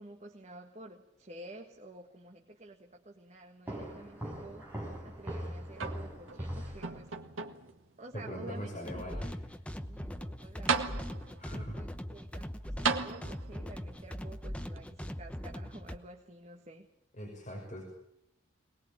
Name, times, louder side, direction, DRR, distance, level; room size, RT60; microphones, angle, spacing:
voice 1, 0.0-4.7 5.0-7.1 8.0-9.5 9.8-11.1 11.5-12.5 12.8-16.9, right 1 dB, 35° right, 2 dB, 1.6 m, -51 dB
sound 1, 3.7-7.4, equal, 10° right, 6.2 m, -41 dB
sound 2, 5.7-6.4 6.8-7.8 8.5-8.6 10.2-10.3 10.7-11.4 12.8-13.7 14.8-14.9, right 5 dB, 90° right, 1.7 m, -34 dB
voice 2, 8.1-9.5 11.4-11.8 17.2-17.8, equal, 35° left, -2 dB, 6.2 m, -41 dB
sound 3, 8.8-16.0, equal, 5° left, 0.8 m, -41 dB
23.0 x 20.0 x 8.9 m, 0.78 s
head